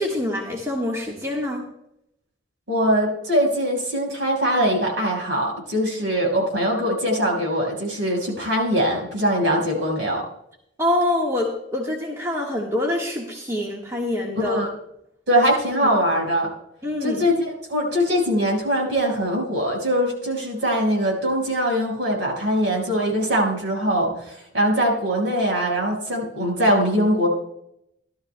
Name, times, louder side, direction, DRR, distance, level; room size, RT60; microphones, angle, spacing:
voice 1, 0.0-1.6 10.8-14.6 16.8-17.3, left 1 dB, 15° right, -2 dB, 1.5 m, -25 dB
voice 2, 2.7-10.2 14.5-14.7 15.3-16.5 17.0-27.3, equal, 65° right, -1 dB, 4.9 m, -22 dB
17.5 x 12.5 x 2.2 m, 0.78 s
head